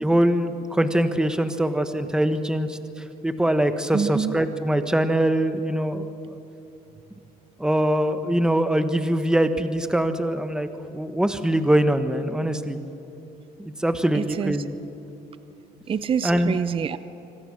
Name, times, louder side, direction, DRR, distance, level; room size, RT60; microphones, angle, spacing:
voice 1, 0.0-2.8 3.2-6.1 7.6-10.7 10.9-12.8 13.6-14.8 16.2-16.6, right 1 dB, 5° right, 9 dB, 1.2 m, -23 dB
voice 2, 3.9-4.3 14.1-14.6 15.9-17.0, right 7 dB, 30° right, 13 dB, 0.6 m, -26 dB
25.5 x 25.0 x 6.5 m, 2.8 s
cardioid pair, 110°, 17 cm